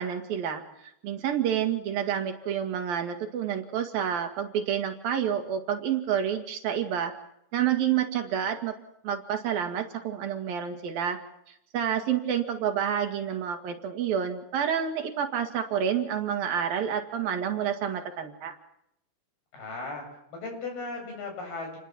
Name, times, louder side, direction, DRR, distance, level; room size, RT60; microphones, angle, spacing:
voice 1, 0.0-7.1 7.5-8.8 9.0-11.2 11.5-18.5, right 9 dB, 70° right, 6 dB, 3.7 m, -29 dB
voice 2, 19.5-21.8, left 3 dB, 75° left, 2 dB, 9.6 m, -37 dB
28.5 x 20.0 x 7.5 m, 0.77 s
omnidirectional pair, 4.4 m